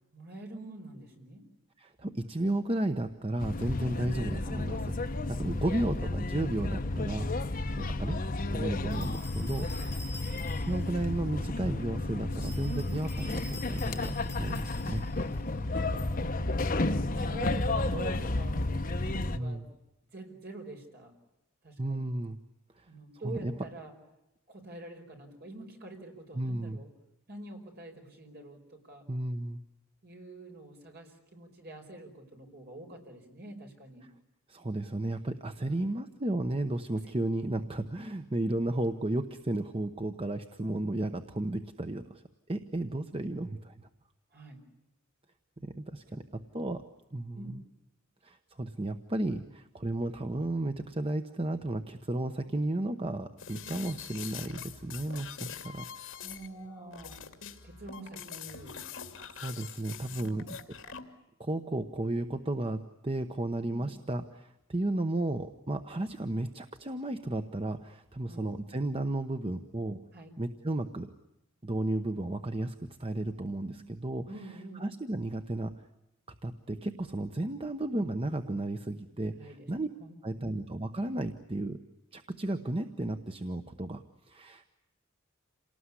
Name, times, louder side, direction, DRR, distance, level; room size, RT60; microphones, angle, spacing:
voice 1, 0.1-1.5 3.8-4.1 5.3-6.0 7.7-8.0 9.8-10.1 15.6-16.5 17.0-19.7 20.1-21.1 21.6-22.1 22.9-23.9 24.5-26.9 27.3-29.0 30.0-34.1 35.6-35.8 42.9-43.2 44.3-44.6 46.1-46.2 47.3-47.6 56.2-57.2 57.6-58.8 60.1-60.6 63.7-63.9 68.3-68.5 70.1-70.3 73.7-73.9 74.2-74.8 79.3-79.7 80.0-80.4, right 1 dB, 50° right, 3 dB, 5.2 m, -46 dB
voice 2, 1.8-4.9 5.3-7.3 8.0-8.2 8.5-9.7 10.6-15.0 19.3-19.7 21.8-22.4 22.8-22.9 23.2-23.5 26.3-26.8 29.1-29.6 34.5-42.2 42.5-43.9 45.6-46.8 47.1-47.5 48.2-55.9 59.3-60.6 61.4-70.0 70.4-71.1 71.6-72.7 73.0-74.3 74.8-75.7 76.4-79.9 80.2-81.8 82.1-84.7, right 1 dB, 25° right, 8 dB, 0.9 m, -33 dB
sound 1, 3.4-19.4, left 2 dB, 40° left, 1.0 m, -32 dB
sound 2, 8.9-10.9 12.3-15.2, left 2 dB, 10° left, 4.9 m, -48 dB
sound 3, 53.4-61.0, left 7 dB, 70° left, 2.7 m, -44 dB
28.0 x 19.0 x 9.8 m, 0.91 s
head